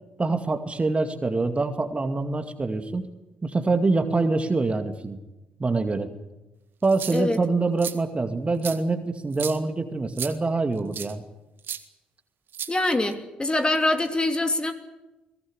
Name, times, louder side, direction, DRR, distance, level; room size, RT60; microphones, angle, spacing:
voice 1, 0.2-3.1 3.4-5.2 5.6-6.1 6.8-11.2, right 3 dB, 25° right, 8 dB, 2.3 m, -25 dB
sound 1, 6.8-7.4 7.8-7.9 8.6-8.8 9.3-9.6 10.2-10.3 10.9-11.1 11.6-11.8 12.5-13.1, right 8 dB, 55° right, 1.8 m, -34 dB
voice 2, 12.7-14.7, left 2 dB, 20° left, 6 dB, 3.0 m, -24 dB
22.0 x 17.5 x 10.0 m, 1.0 s
figure-of-eight pair, 45°, 4 cm